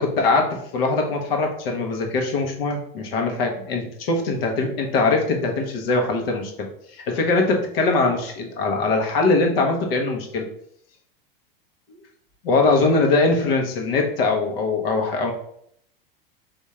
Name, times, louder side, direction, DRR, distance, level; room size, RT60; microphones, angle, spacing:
voice 1, 0.0-6.7 7.1-10.5 12.4-15.3, left 3 dB, 75° left, 2 dB, 1.2 m, -22 dB
3.6 x 2.8 x 4.2 m, 0.68 s
hypercardioid pair, 110°, 30 cm